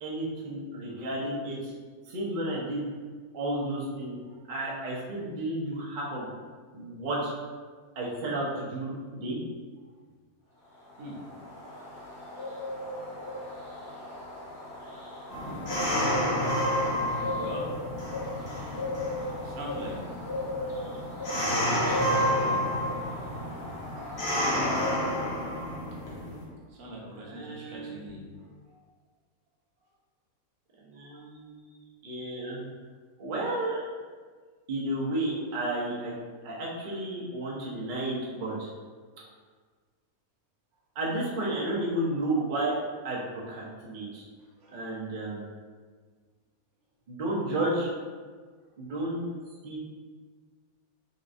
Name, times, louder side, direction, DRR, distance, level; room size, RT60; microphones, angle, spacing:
voice 1, 0.0-1.7 2.1-2.8 3.3-4.1 4.5-6.3 6.7-7.3 8.0-9.4 27.2-28.2 30.8-31.8 32.0-32.6 33.2-33.8 34.7-36.2 36.4-38.7 41.0-42.8 43.0-44.2 44.7-45.4 47.1-47.9 48.8-49.3 49.6-49.8, right 1 dB, 45° right, -5 dB, 0.7 m, -32 dB
sound 1, 10.7-25.3, left 1 dB, 25° left, 0.7 m, -38 dB
sound 2, 15.3-26.4, equal, 50° left, 1.0 m, -30 dB
voice 2, 17.3-17.7 18.2-20.5 21.3-22.7 26.4-28.8 31.1-31.2 39.2-39.3 44.6-44.8, right 1 dB, 85° right, -3 dB, 1.3 m, -44 dB
4.0 x 2.3 x 2.6 m, 1.5 s
omnidirectional pair, 1.6 m